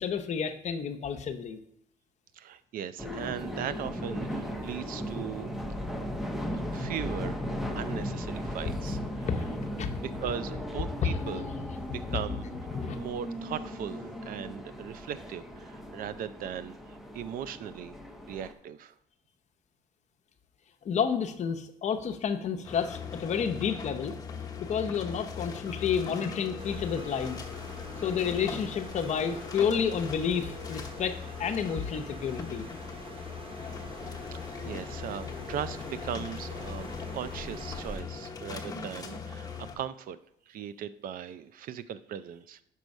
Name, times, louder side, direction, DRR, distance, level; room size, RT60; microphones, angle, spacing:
voice 1, 0.0-1.6 9.2-9.9 11.0-11.8 12.1-12.2 12.7-13.0 20.8-24.2 24.6-27.4 28.0-32.6, left 7 dB, 45° left, 5 dB, 0.7 m, -30 dB
voice 2, 2.4-5.5 6.7-7.5 7.8-9.3 10.0-11.4 11.9-12.4 13.0-17.9 18.3-18.9 34.6-40.2 40.5-42.6, right 9 dB, 55° right, 14 dB, 0.4 m, -38 dB
sound 1, 3.0-18.5, equal, ahead, 0.6 m, -37 dB
sound 2, 22.6-39.8, left 6 dB, 20° left, 1.0 m, -40 dB
sound 3, 26.6-38.0, equal, 30° right, 0.9 m, -45 dB
5.5 x 4.7 x 5.2 m, 0.76 s
cardioid pair, 110°, 17 cm